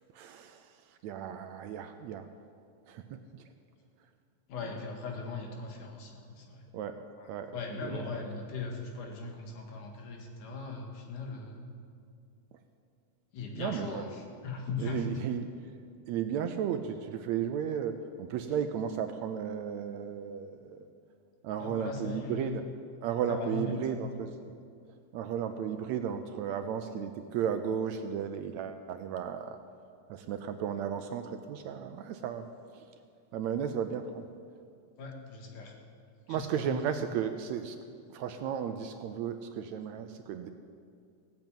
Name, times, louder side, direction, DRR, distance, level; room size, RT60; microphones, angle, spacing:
voice 1, 0.1-0.7 1.0-2.3 2.9-3.4 6.7-7.0 7.3-8.0 13.5-14.0 14.8-15.5 16.1-20.9 21.4-22.7 23.0-24.6 25.1-29.6 30.1-32.5 32.7-32.8 33.3-34.3 36.3-37.8 38.1-40.5, right 8 dB, 75° right, 8 dB, 1.8 m, -34 dB
voice 2, 4.5-6.7 7.2-11.6 13.3-15.2 21.6-22.7 23.3-24.1 35.0-35.7 36.3-37.0, left 4 dB, 75° left, 1 dB, 3.3 m, -39 dB
16.5 x 8.3 x 8.9 m, 2.3 s
omnidirectional pair, 3.6 m